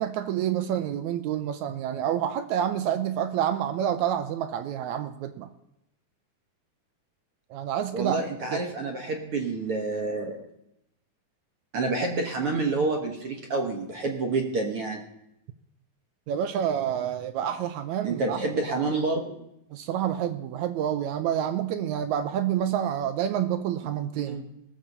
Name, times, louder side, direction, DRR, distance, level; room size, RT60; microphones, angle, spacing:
voice 1, 0.0-5.5 7.5-8.2 8.5-8.6 16.3-18.4 18.7-18.9 19.7-24.4, right 10 dB, 80° right, 10 dB, 1.8 m, -28 dB
voice 2, 7.9-10.4 11.7-15.0 18.0-19.4 24.1-24.4, right 3 dB, 55° right, 3 dB, 1.8 m, -28 dB
18.5 x 7.3 x 5.4 m, 0.82 s
omnidirectional pair, 3.8 m